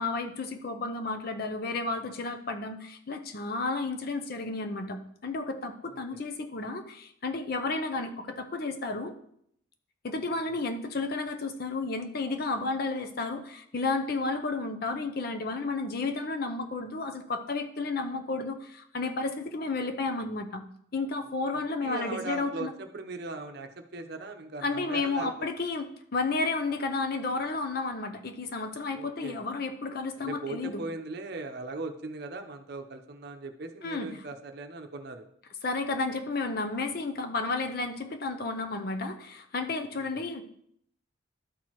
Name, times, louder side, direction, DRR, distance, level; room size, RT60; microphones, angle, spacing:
voice 1, 0.0-9.1 10.0-20.7 20.9-22.7 24.6-30.8 33.8-34.1 35.6-40.5, left 3 dB, 45° left, 6 dB, 0.6 m, -32 dB
voice 2, 21.5-25.3 28.9-29.4 30.2-35.2 39.9-40.0, right 3 dB, 50° right, 6 dB, 0.7 m, -39 dB
12.5 x 4.5 x 3.0 m, 0.70 s
head